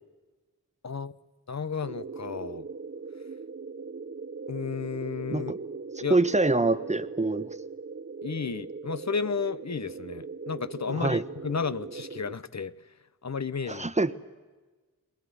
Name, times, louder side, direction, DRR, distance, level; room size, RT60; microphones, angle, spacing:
voice 1, 0.8-1.1 1.5-2.6 4.5-5.5 6.0-6.2 8.2-12.7 13.2-13.9, left 5 dB, 50° left, 0.9 m, -32 dB
sound 1, 1.8-12.4, right 4 dB, 35° right, 0.7 m, -40 dB
voice 2, 6.1-7.5 10.9-11.2 13.7-14.1, right 2 dB, 20° right, 1.1 m, -25 dB
23.0 x 20.5 x 9.6 m
wide cardioid pair, 60°, 34 cm